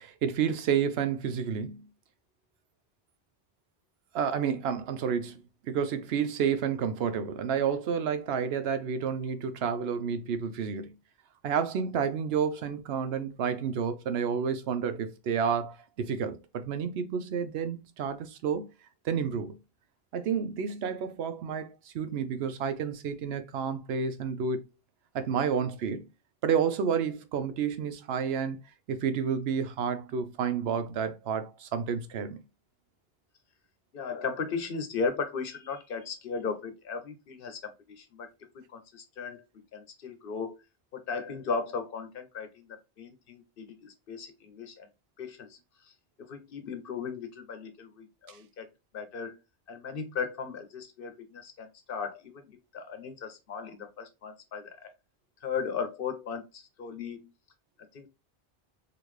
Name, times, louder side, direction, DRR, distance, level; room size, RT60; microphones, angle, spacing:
voice 1, 0.0-1.8 4.1-10.9 11.4-18.6 19.0-19.6 20.1-24.6 25.1-26.1 26.4-28.6 28.9-32.4, right 7 dB, 80° right, 0.9 m, -30 dB
voice 2, 33.9-38.3 38.5-39.4 39.7-40.6 40.9-44.9 45.2-48.7 48.9-49.4 49.7-54.9 55.4-57.3 57.9-58.1, left 5 dB, 60° left, 1.0 m, -37 dB
3.8 x 2.5 x 3.1 m
omnidirectional pair, 1.0 m